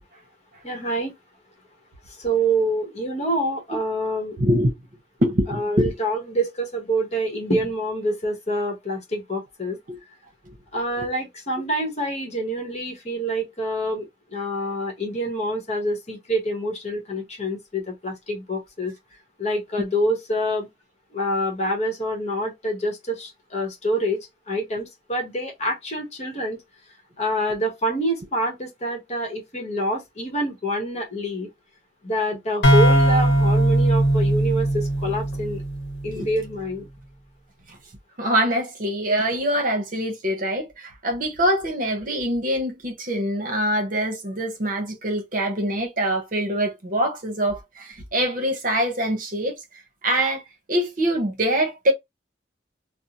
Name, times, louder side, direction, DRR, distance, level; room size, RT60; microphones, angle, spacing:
voice 1, 0.6-1.1 2.2-4.4 5.5-9.8 10.7-18.9 19.4-20.7 21.1-26.6 27.2-31.5 32.0-35.6 36.0-36.9, right 1 dB, 40° left, 0.9 m, -26 dB
voice 2, 4.4-4.7 5.2-5.9 9.9-10.0 11.0-11.1 36.1-36.3 38.2-49.5 50.0-50.4 50.7-51.9, right 1 dB, 50° right, 0.8 m, -24 dB
sound 1, 32.6-36.3, right 1 dB, 90° left, 0.8 m, -19 dB
2.6 x 2.0 x 2.8 m
head